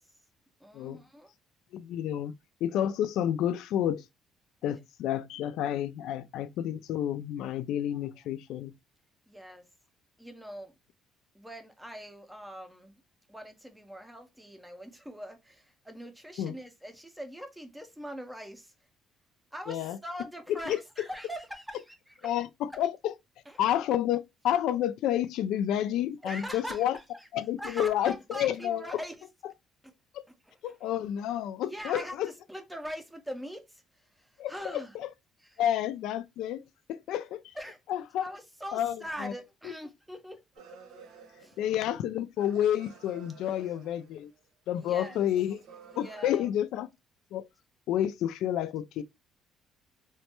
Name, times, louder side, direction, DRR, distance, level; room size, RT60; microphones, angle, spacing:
voice 1, 0.6-1.3 9.3-9.6 10.2-10.7 11.3-12.9 13.3-18.7 19.5-22.3 23.5-23.6 26.2-27.3 27.6-29.1 30.3-30.7 31.6-33.8 34.2-35.0 35.4-35.6 37.5-37.8 38.2-40.4 41.4-41.6 44.8-45.2 46.0-46.5, equal, 5° right, 0.5 m, -42 dB
voice 2, 1.7-2.3 2.6-4.0 4.6-8.7 16.4-16.5 19.7-20.0 20.5-20.8 22.2-23.1 23.6-27.0 27.3-29.0 30.1-30.2 30.6-32.3 34.4-35.1 35.6-36.6 36.9-37.4 37.9-38.3 38.7-39.3 39.6-39.7 41.6-44.3 44.7-45.6 46.0-46.9 47.3-47.5 47.9-49.0, left 11 dB, 70° left, 0.3 m, -30 dB
sound 1, 40.6-42.1 42.4-44.4 44.8-46.3, right 6 dB, 75° right, 0.8 m, -52 dB
3.0 x 2.2 x 2.9 m
cardioid pair, 160°, 0 cm